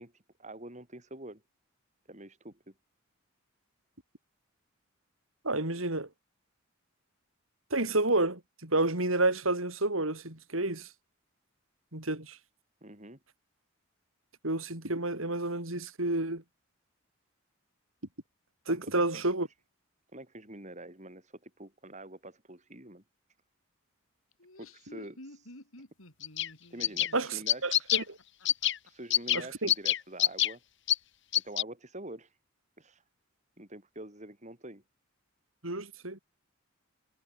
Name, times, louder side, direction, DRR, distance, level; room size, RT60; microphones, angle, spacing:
voice 1, 0.0-1.4 2.1-2.7 12.8-13.2 18.7-19.2 20.1-23.0 24.6-25.5 26.7-27.8 28.8-30.6 31.4-32.3 32.8-33.0 33.6-34.8, right 1 dB, 35° right, 5.6 m, -46 dB
voice 2, 5.4-6.1 7.7-10.9 11.9-12.4 14.4-16.4 18.7-19.5 27.1-28.2 29.3-29.7 35.6-36.2, right 2 dB, 75° right, 5.4 m, -30 dB
Laughter, 24.3-28.9, left 1 dB, 80° left, 7.3 m, -52 dB
sound 1, 26.2-26.5 26.8-27.1 27.5-28.0 28.5-28.8 29.1-29.4 29.7-30.5 30.9-31.0 31.3-31.6, left 12 dB, 60° left, 2.8 m, -25 dB
head